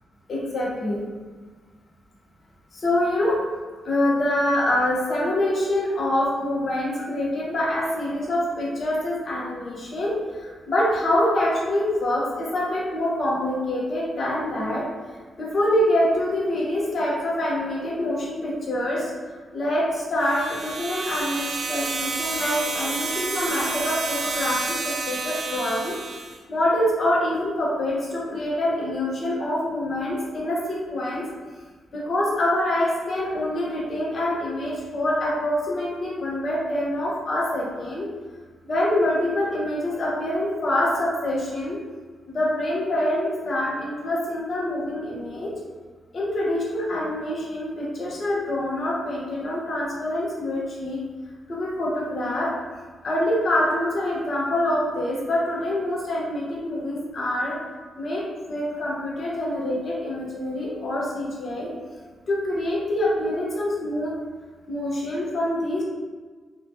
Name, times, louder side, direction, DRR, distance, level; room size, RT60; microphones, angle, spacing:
voice 1, 0.3-1.1 2.8-3.4 3.8-14.9 15.4-19.1 19.5-26.0 26.5-31.3 31.9-38.1 38.6-41.8 42.3-45.5 46.1-51.0 51.5-52.5 53.0-57.6 58.0-61.7 62.3-64.1 64.7-65.8, left 1 dB, 55° left, -4 dB, 0.8 m, -25 dB
sound 1, 20.2-26.4, right 3 dB, 60° right, 0.4 m, -30 dB
2.8 x 2.2 x 2.7 m, 1.4 s
cardioid pair, 65°, 0 cm